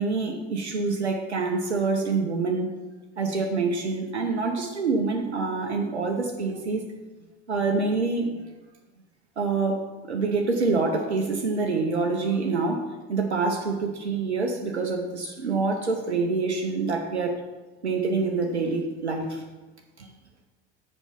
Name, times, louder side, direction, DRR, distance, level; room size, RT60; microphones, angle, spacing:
voice 1, 0.0-2.7 3.2-6.8 7.5-8.4 9.4-12.8 13.1-17.4 17.8-19.4 20.0-20.1, right 4 dB, 80° right, 3 dB, 0.8 m, -26 dB
7.0 x 4.6 x 5.6 m, 1.1 s
figure-of-eight pair, 75°, 33 cm